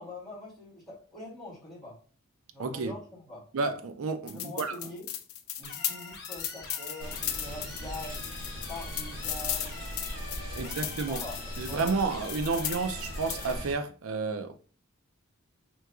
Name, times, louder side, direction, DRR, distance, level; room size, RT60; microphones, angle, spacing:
voice 1, 0.0-2.0 2.5-3.4 4.3-5.1 5.6-8.2 8.5-9.8 10.5-11.8, left 1 dB, ahead, 2.2 m, -44 dB
voice 2, 2.6-2.9 3.5-4.8 10.6-11.2 11.6-14.5, right 4 dB, 75° right, 0.5 m, -31 dB
sound 1, 4.3-13.6, left 10 dB, 85° left, 0.5 m, -37 dB
sound 2, 5.6-13.6, left 3 dB, 50° left, 1.2 m, -45 dB
sound 3, 7.0-13.7, equal, 55° right, 1.5 m, -40 dB
4.5 x 3.7 x 2.3 m
head